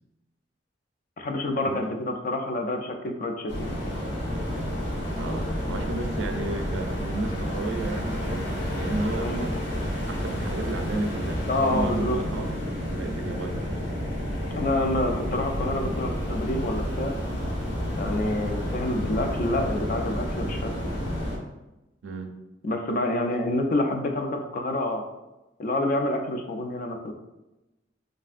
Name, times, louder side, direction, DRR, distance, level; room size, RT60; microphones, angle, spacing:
voice 1, 1.2-3.8 9.2-9.5 11.5-12.2 14.5-17.1 17.9-20.7 22.6-25.0 25.6-27.1, left 1 dB, 45° left, 4 dB, 0.4 m, -28 dB
sound 1, 3.5-21.4, equal, 70° left, 0.9 m, -30 dB
voice 2, 5.2-9.6 10.1-12.7 13.0-13.8 22.0-22.3, right 2 dB, 80° right, 4 dB, 0.4 m, -33 dB
3.2 x 2.5 x 2.4 m, 0.99 s
head